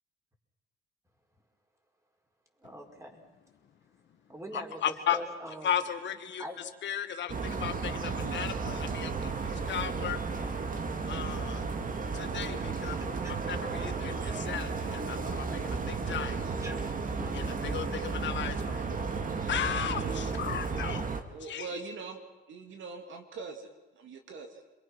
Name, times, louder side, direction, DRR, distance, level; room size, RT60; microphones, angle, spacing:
voice 1, 2.6-3.2 4.3-5.8 6.4-6.6 12.6-13.4 16.6-16.7 17.2-17.3 19.7-19.8, equal, 15° right, 2 dB, 5.1 m, -43 dB
voice 2, 4.5-5.2 5.6-6.4 6.8-10.2 11.0-11.7 12.1-13.0 13.3-16.5 17.3-18.9 19.5-21.0 21.4-21.7, left 9 dB, 65° left, 7 dB, 1.7 m, -35 dB
sound 1, 7.3-21.2, right 4 dB, 45° right, 2.1 m, -33 dB
voice 3, 21.3-22.2 22.5-23.7 24.0-24.6, right 4 dB, 75° right, 4 dB, 3.0 m, -42 dB
27.5 x 23.0 x 6.1 m, 1.2 s
cardioid pair, 90°, 20 cm